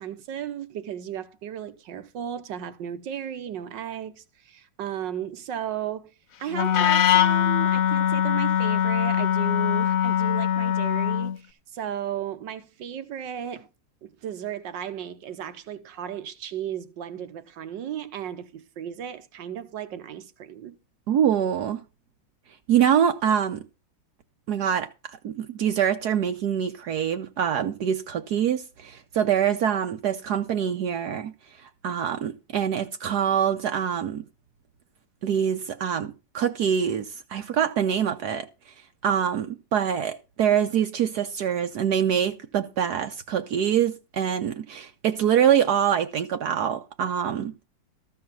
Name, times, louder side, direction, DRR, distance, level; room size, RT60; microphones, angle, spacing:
voice 1, 0.0-6.1 6.4-13.7 14.0-20.8, right 9 dB, 80° right, 1.7 m, -35 dB
Wind instrument woodwind instrument, 6.5-11.4, left 10 dB, 55° left, 1.1 m, -22 dB
voice 2, 21.1-21.8 22.7-23.6 24.5-31.3 31.8-34.2 35.2-38.5 39.0-47.5, right 9 dB, 65° right, 1.3 m, -25 dB
14.0 x 4.7 x 7.5 m
omnidirectional pair, 1.9 m